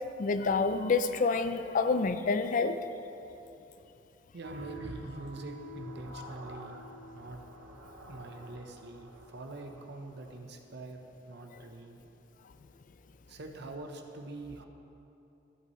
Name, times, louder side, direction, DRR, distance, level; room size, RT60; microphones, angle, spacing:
voice 1, 0.2-2.8 6.1-6.3, left 4 dB, 45° left, 10 dB, 0.4 m, -28 dB
voice 2, 4.3-6.8 7.1-7.4 8.1-11.0 11.3-12.0 13.3-14.7, right 2 dB, 60° right, 4 dB, 0.8 m, -44 dB
sound 1, 4.4-10.4, right 1 dB, 85° right, 1.0 m, -47 dB
14.0 x 8.2 x 3.1 m, 2.9 s
head